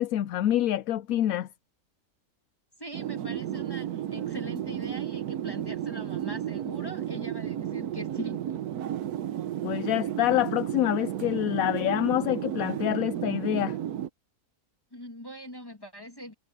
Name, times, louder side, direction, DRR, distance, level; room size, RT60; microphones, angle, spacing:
voice 1, 0.0-1.5 9.6-13.8, left 13 dB, 75° left, 1.0 m, -26 dB
voice 2, 2.8-8.4 14.9-16.3, equal, 15° left, 1.6 m, -42 dB
sound 1, 2.9-14.1, right 10 dB, 90° right, 1.3 m, -33 dB
omnidirectional pair, 1.6 m